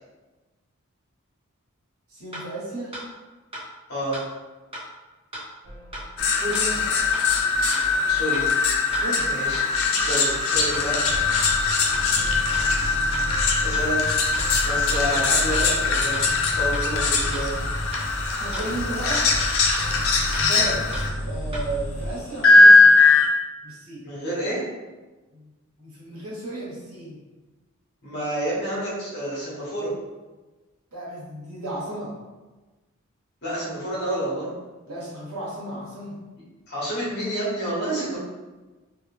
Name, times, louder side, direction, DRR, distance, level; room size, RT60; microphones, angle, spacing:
voice 1, 2.1-2.9 6.3-6.8 8.9-9.2 18.4-19.2 20.3-20.8 21.3-23.0 23.6-24.0 25.3-25.5 25.8-27.2 30.9-32.1 34.9-36.2, right 1 dB, 90° right, -7 dB, 1.4 m, -33 dB
sound 1, 2.3-2.4 2.9-3.1 3.5-3.7 4.1-4.2 4.7-4.9 5.3-5.5 5.9-6.0 6.5-6.7 7.1-7.3 7.7-7.8 8.3-8.5 8.9-9.0 9.5-9.6 10.1-10.2 10.7-10.8 11.3-11.5 11.9-12.1 12.5-12.6 13.1-13.3 13.7-13.9 14.3-14.5 14.9-15.1 15.5-15.7 16.1-16.3 16.7-16.9 17.3-17.5 17.9-18.1 18.5-18.7 19.1-19.2 19.7-19.9 20.3-20.5 20.9-21.1 21.5-21.6, right 1 dB, 25° right, 0.9 m, -35 dB
sound 2, 5.6-22.1, equal, 50° right, 0.8 m, -33 dB
sound 3, 6.2-21.1 22.4-23.3, left 3 dB, 70° left, 0.6 m, -20 dB
voice 2, 8.1-8.5 9.2-11.1 13.6-14.1 14.6-17.5 24.0-24.6 28.0-29.9 33.4-34.5 36.7-38.2, right 1 dB, 50° left, -6 dB, 1.3 m, -29 dB
3.3 x 2.5 x 3.3 m, 1.2 s
head